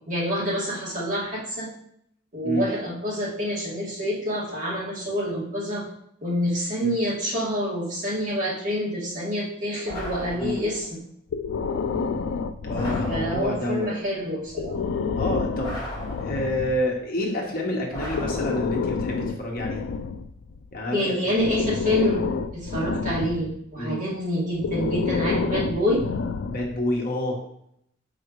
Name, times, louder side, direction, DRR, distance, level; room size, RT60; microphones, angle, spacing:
voice 1, 0.1-1.7 2.3-5.9 6.2-11.0 13.1-14.8 20.9-22.3 22.5-26.1, equal, 45° right, -7 dB, 2.2 m, -27 dB
sound 1, 9.9-10.9 12.7-13.8 15.6-16.7 17.9-19.0, equal, 25° left, 2.5 m, -37 dB
Breathing, 11.3-13.7 14.5-16.8 17.9-20.8 21.4-23.6 24.5-26.8, left 5 dB, 75° left, 0.3 m, -29 dB
voice 2, 12.6-13.9 15.1-15.7 16.1-19.9 20.7-21.5 23.8-24.0 26.4-27.4, left 1 dB, 50° left, -1 dB, 1.3 m, -28 dB
6.4 x 4.9 x 3.1 m, 0.72 s
head